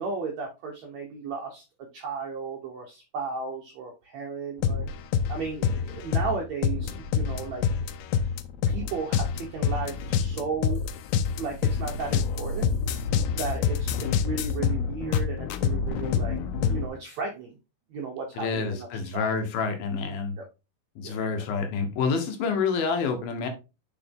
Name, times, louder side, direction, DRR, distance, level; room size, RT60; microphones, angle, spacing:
voice 1, 0.0-1.6 1.9-4.8 5.3-7.6 8.7-10.8 11.3-12.7 13.3-16.4 16.7-17.6 17.9-19.4 21.0-21.1, right 5 dB, 70° right, 1 dB, 1.6 m, -34 dB
sound 1, 4.6-16.9, left 7 dB, 90° left, 2.7 m, -27 dB
voice 2, 18.4-20.3 21.0-23.5, left 5 dB, 70° left, 6 dB, 3.0 m, -28 dB
6.6 x 6.1 x 3.6 m, 0.28 s
omnidirectional pair, 4.5 m